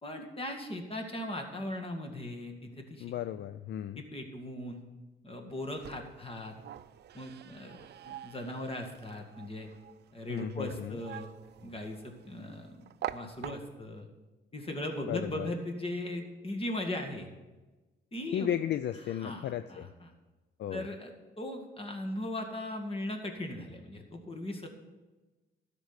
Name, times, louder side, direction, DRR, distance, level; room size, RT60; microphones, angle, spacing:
voice 1, 0.0-3.1 4.0-4.8 5.2-6.6 7.1-7.8 8.0-9.7 10.1-11.3 11.6-12.7 13.1-14.1 14.5-17.3 18.1-18.5 19.2-20.1 20.7-21.1 21.4-24.7, left 1 dB, 30° left, 3 dB, 2.0 m, -38 dB
voice 2, 3.0-4.0 10.3-11.0 15.1-15.5 18.3-19.9 20.6-20.9, left 10 dB, 60° left, 12 dB, 0.4 m, -34 dB
sound 1, 5.5-14.0, right 11 dB, 55° right, 0.5 m, -46 dB
12.5 x 5.3 x 8.2 m, 1.2 s
cardioid pair, 90°, 20 cm